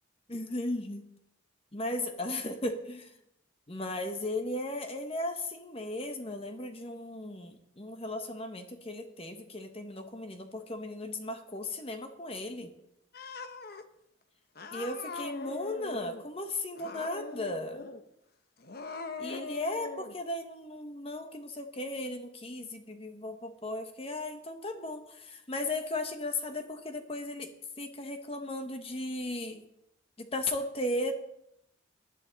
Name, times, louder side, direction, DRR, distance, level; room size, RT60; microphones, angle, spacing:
voice 1, 0.3-1.1 1.7-3.1 3.7-12.7 14.7-17.9 19.2-27.5 27.8-29.6 30.2-31.1, left 2 dB, 30° left, 6 dB, 1.1 m, -36 dB
Cat, 13.1-13.8 14.6-16.2 16.7-18.0 18.6-20.1, left 3 dB, 50° left, 0.8 m, -41 dB
18.5 x 11.0 x 4.0 m, 0.80 s
head